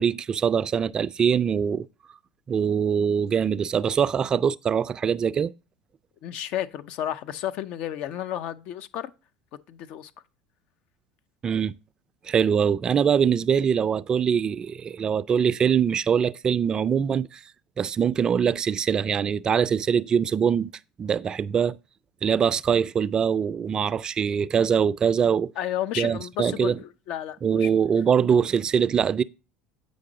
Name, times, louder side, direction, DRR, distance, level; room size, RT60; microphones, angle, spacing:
voice 1, 0.0-1.9 2.5-5.5 11.4-11.7 12.3-17.4 17.8-20.7 21.0-21.8 22.2-25.5 26.0-26.8 27.4-29.2, right 7 dB, 35° right, 0.4 m, -23 dB
voice 2, 6.2-9.1 9.7-10.1 25.6-27.7, left 11 dB, 60° left, 0.6 m, -32 dB
8.4 x 5.2 x 3.9 m
hypercardioid pair, 85°, 2 cm